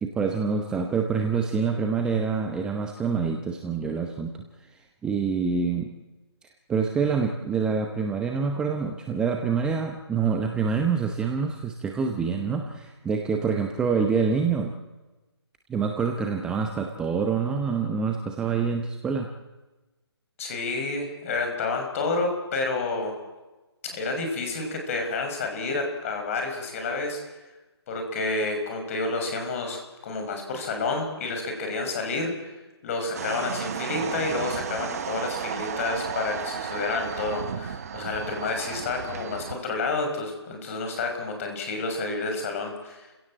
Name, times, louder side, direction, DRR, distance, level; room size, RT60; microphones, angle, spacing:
voice 1, 0.0-4.3 5.0-5.9 6.7-14.7 15.7-19.3, right 5 dB, 5° right, 4 dB, 0.8 m, -26 dB
voice 2, 20.4-23.1 23.9-27.2 27.9-32.5 32.8-43.1, left 3 dB, 30° left, 4 dB, 5.6 m, -29 dB
sound 1, 33.1-39.5, right 8 dB, 35° right, 1.0 m, -33 dB
29.5 x 16.5 x 7.6 m, 1.2 s
figure-of-eight pair, 155°, 14 cm